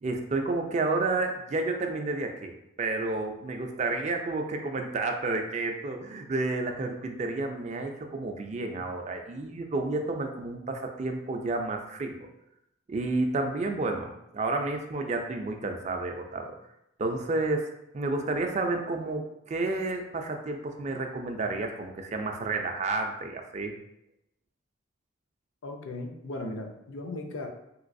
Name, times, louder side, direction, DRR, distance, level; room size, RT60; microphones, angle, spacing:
voice 1, 0.0-12.2 12.9-16.6 17.0-23.7, right 3 dB, 35° right, 4 dB, 0.3 m, -31 dB
voice 2, 25.6-27.5, left 2 dB, 75° left, 4 dB, 0.5 m, -37 dB
3.2 x 3.0 x 2.5 m, 0.84 s
head